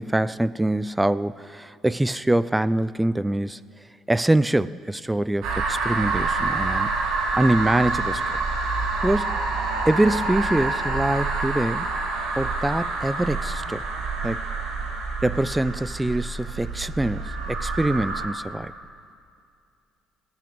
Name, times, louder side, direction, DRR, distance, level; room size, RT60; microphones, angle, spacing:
voice 1, 0.0-3.6 4.1-6.9 7.3-8.4 9.0-9.4 9.9-11.9 12.4-13.8 14.2-14.4 15.2-18.7, right 1 dB, 10° right, 0.3 m, -24 dB
sound 1, 5.4-18.3, right 3 dB, 75° right, 2.2 m, -27 dB
18.5 x 8.6 x 4.6 m
supercardioid pair, 80°, 0 cm